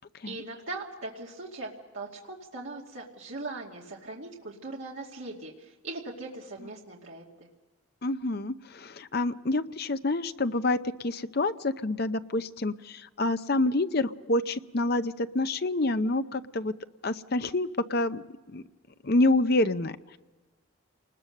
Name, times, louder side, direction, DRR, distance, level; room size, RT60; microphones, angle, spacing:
voice 1, 0.3-7.5, right 2 dB, 70° right, -3 dB, 2.4 m, -40 dB
voice 2, 8.0-16.7 17.0-18.6 19.0-20.2, left 2 dB, 45° left, 11 dB, 0.7 m, -27 dB
29.0 x 20.5 x 6.6 m, 1.2 s
head